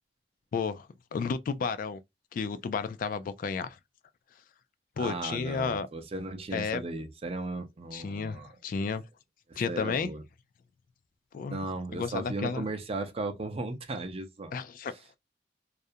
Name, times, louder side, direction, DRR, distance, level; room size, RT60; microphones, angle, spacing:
voice 1, 0.5-2.0 2.3-3.8 5.0-5.9 6.5-6.8 7.9-9.0 9.6-10.1 11.3-11.7 11.9-12.7 14.5-14.9, left 5 dB, 50° left, 0.3 m, -32 dB
voice 2, 5.0-8.6 9.5-10.2 11.5-14.6, right 2 dB, 35° right, 0.5 m, -36 dB
2.4 x 2.1 x 2.6 m
head